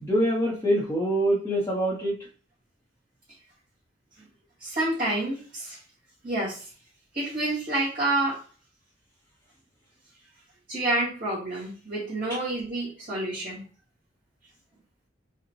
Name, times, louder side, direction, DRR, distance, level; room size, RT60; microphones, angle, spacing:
voice 1, 0.0-2.2, right 1 dB, 15° left, -5 dB, 0.8 m, -24 dB
voice 2, 4.6-5.8 6.2-6.7 7.1-8.4 10.7-13.7, right 2 dB, 50° right, -10 dB, 2.0 m, -28 dB
4.8 x 2.2 x 3.1 m, 0.39 s
head